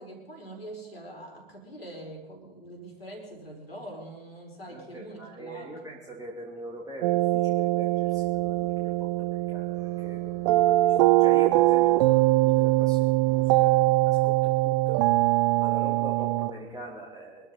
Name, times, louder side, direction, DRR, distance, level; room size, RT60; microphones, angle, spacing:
voice 1, 0.0-6.0, right 1 dB, 85° left, 0 dB, 5.0 m, -43 dB
voice 2, 4.6-13.7 14.0-15.0 15.6-17.5, right 2 dB, 10° right, -4 dB, 3.0 m, -43 dB
sound 1, 7.0-16.5, right 18 dB, 45° right, 0.6 m, -22 dB
sound 2, 7.9-16.9, right 1 dB, 65° right, 5.2 m, -55 dB
24.5 x 13.0 x 4.1 m, 1.1 s
figure-of-eight pair, 90°, 29 cm